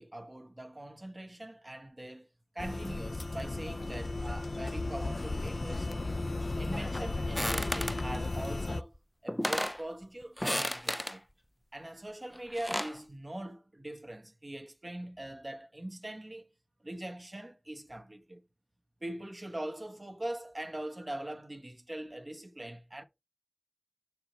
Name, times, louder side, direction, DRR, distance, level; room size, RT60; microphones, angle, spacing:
voice 1, 0.0-2.3 2.5-5.9 6.6-8.9 9.2-11.2 11.7-16.4 16.8-18.4 19.0-23.0, right 1 dB, 40° right, 1.0 m, -42 dB
sound 1, 2.6-8.8, left 2 dB, 70° left, 0.4 m, -35 dB
sound 2, 7.4-8.1 9.0-9.1 9.3-9.8 10.4-11.2 12.3-13.0, equal, 10° left, 0.4 m, -33 dB
6.3 x 4.7 x 4.3 m
wide cardioid pair, 45°, 0 cm